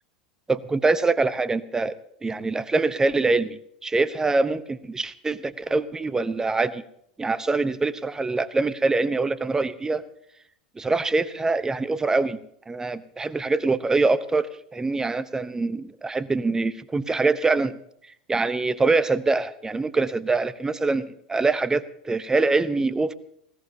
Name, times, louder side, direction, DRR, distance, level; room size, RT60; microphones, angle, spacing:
voice 1, 0.5-6.8 7.2-10.0 10.8-12.4 12.7-17.8 18.3-23.1, right 3 dB, 15° right, 15 dB, 0.9 m, -24 dB
19.5 x 18.0 x 2.9 m, 0.69 s
figure-of-eight pair, 85°, 4 cm